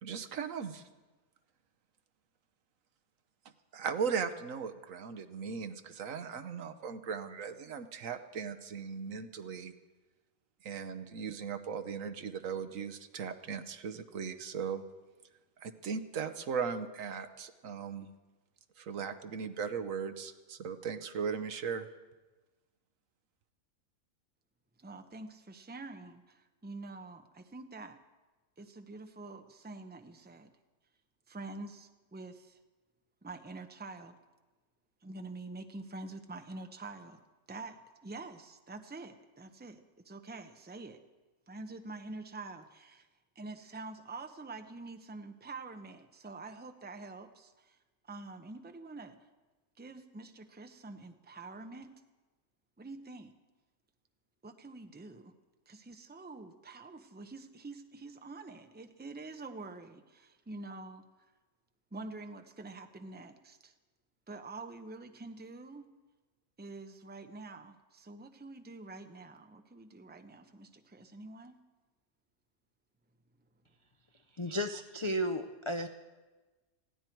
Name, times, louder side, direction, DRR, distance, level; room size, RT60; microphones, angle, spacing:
voice 1, 0.0-0.8 3.7-9.7 10.6-14.8 15.6-18.1 18.8-21.9, right 6 dB, 70° right, 10 dB, 1.3 m, -38 dB
voice 2, 24.8-28.0 28.6-30.5 31.3-32.6 33.2-34.1 35.0-37.2 37.5-41.0 41.5-43.1 43.3-47.8 48.1-49.2 49.8-51.9 52.8-53.3 54.4-55.3 55.7-61.0 61.9-63.7 64.3-65.9 66.6-71.6, right 3 dB, 10° right, 7 dB, 0.6 m, -46 dB
voice 3, 74.3-75.9, equal, 40° left, 7 dB, 0.4 m, -34 dB
20.0 x 15.5 x 4.6 m, 1.2 s
omnidirectional pair, 1.5 m